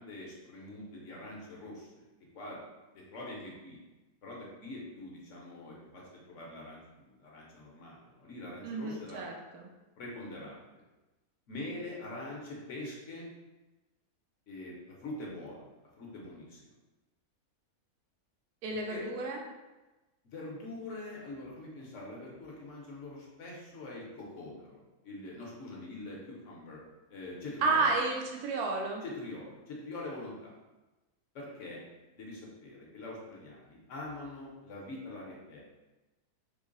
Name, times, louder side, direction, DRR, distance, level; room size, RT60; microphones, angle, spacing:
voice 1, 0.0-2.0 2.3-2.6 2.9-3.8 4.2-9.2 10.0-10.6 11.5-13.3 14.5-15.6 16.0-16.6 18.9-19.0 20.2-26.8 27.1-28.0 29.0-30.5 31.3-31.8 32.2-35.6, left 2 dB, 60° left, -3 dB, 1.0 m, -44 dB
voice 2, 8.6-9.7 18.6-19.4 27.6-29.0, right 3 dB, 85° right, 0 dB, 1.2 m, -31 dB
3.7 x 2.0 x 3.7 m, 1.1 s
omnidirectional pair, 1.6 m